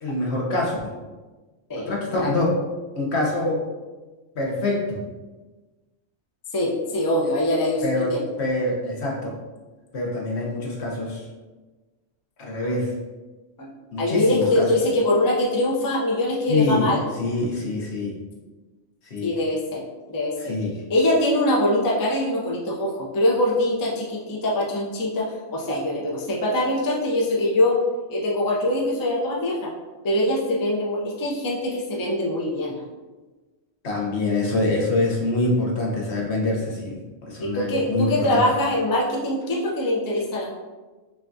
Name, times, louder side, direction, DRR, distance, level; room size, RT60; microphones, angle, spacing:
voice 1, 0.0-0.9 1.9-2.6 2.9-3.6 4.3-5.0 7.8-9.4 9.9-11.2 12.4-12.9 13.9-14.7 16.5-18.2 19.1-19.4 20.4-20.7 33.8-38.4, left 2 dB, 65° left, -2 dB, 1.1 m, -25 dB
voice 2, 6.5-8.2 13.6-13.7 14.0-17.1 19.2-20.6 20.9-27.8 28.1-29.7 30.0-32.8 37.4-40.5, left 1 dB, 30° left, -3 dB, 0.4 m, -23 dB
5.9 x 2.3 x 2.6 m, 1.2 s
omnidirectional pair, 1.2 m